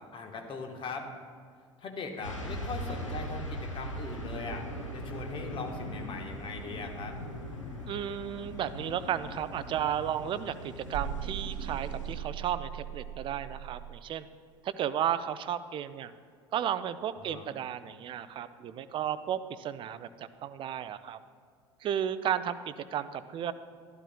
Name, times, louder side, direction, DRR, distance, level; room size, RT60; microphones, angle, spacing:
voice 1, 0.1-1.1 1.8-4.6 4.9-7.1 17.3-17.6, left 4 dB, 35° left, 4 dB, 1.2 m, -40 dB
sound 1, 2.2-12.1, equal, 85° left, 1.0 m, -40 dB
voice 2, 7.9-14.3 14.6-16.1 16.5-21.2 21.8-23.5, right 10 dB, 35° right, 13 dB, 0.4 m, -33 dB
sound 2, 10.9-14.0, right 9 dB, 75° right, 1.0 m, -39 dB
12.0 x 12.0 x 2.3 m, 2.1 s
figure-of-eight pair, 70°, 16 cm